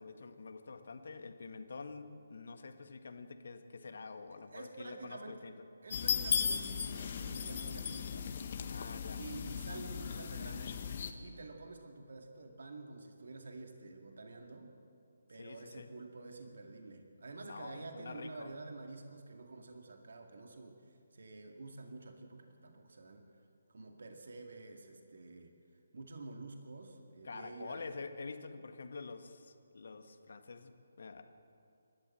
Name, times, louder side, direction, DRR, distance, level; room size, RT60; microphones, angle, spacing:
voice 1, 0.0-5.5 8.7-9.2 15.4-15.9 17.4-18.5 27.2-31.2, left 4 dB, 60° left, 7 dB, 1.7 m, -47 dB
voice 2, 4.5-5.4 5.8-8.4 9.2-10.8 11.2-14.8 15.3-23.2 23.7-25.5 25.9-28.0, right 3 dB, 60° right, 4 dB, 2.2 m, -49 dB
sound 1, 5.9-11.1, left 7 dB, 40° left, 1.5 m, -37 dB
27.5 x 13.0 x 7.7 m, 2.6 s
figure-of-eight pair, 145°, 0 cm